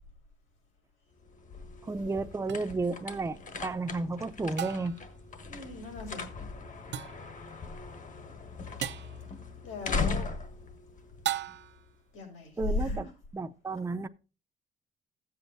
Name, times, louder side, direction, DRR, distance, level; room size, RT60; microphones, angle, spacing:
sound 1, 1.1-11.9, left 4 dB, 40° left, 1.4 m, -39 dB
voice 1, 1.8-5.0 12.6-13.1 13.3-14.1, right 3 dB, 15° right, 0.6 m, -32 dB
sound 2, 2.5-2.6 4.6-5.1 6.9-7.3 8.8-9.2 11.2-11.9, right 10 dB, 65° right, 0.6 m, -35 dB
voice 2, 5.5-6.3 9.6-10.3 12.1-12.5 12.8-13.1, left 3 dB, 90° left, 5.6 m, -39 dB
15.0 x 8.0 x 2.6 m
cardioid pair, 90°, 20 cm